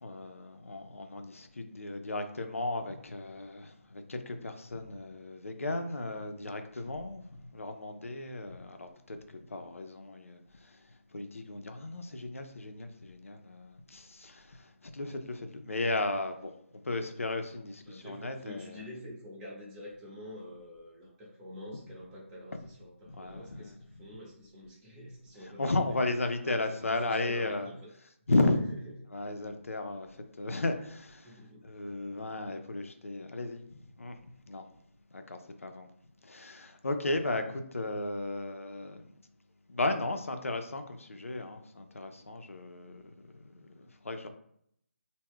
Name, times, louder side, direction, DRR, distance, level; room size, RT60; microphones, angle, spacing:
voice 1, 0.0-18.8 22.5-22.6 23.1-23.8 25.6-27.7 28.3-28.6 29.1-34.2 34.5-34.7 35.1-35.9 36.2-39.2 39.7-44.3, left 2 dB, 80° left, 0.4 m, -35 dB
voice 2, 17.9-25.8 26.4-27.7 28.3-28.9 31.2-32.0, left 1 dB, 10° right, 0.7 m, -47 dB
2.2 x 2.1 x 3.5 m
figure-of-eight pair, 155°, 7 cm